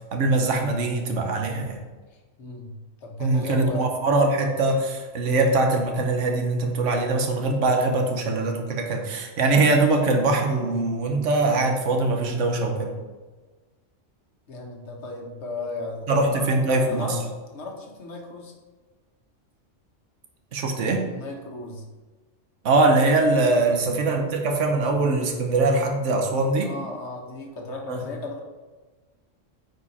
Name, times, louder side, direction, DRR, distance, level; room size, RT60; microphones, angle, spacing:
voice 1, 0.1-1.8 3.2-12.9 16.1-17.2 20.5-21.0 22.6-26.7 27.9-28.0, right 2 dB, 75° right, 3 dB, 1.4 m, -22 dB
voice 2, 2.1-2.7 3.0-3.9 14.5-16.5 16.9-18.5 21.0-21.8 23.7-23.9 26.6-28.4, left 3 dB, 65° left, 1 dB, 1.6 m, -36 dB
9.2 x 5.0 x 4.2 m, 1.3 s
omnidirectional pair, 1.3 m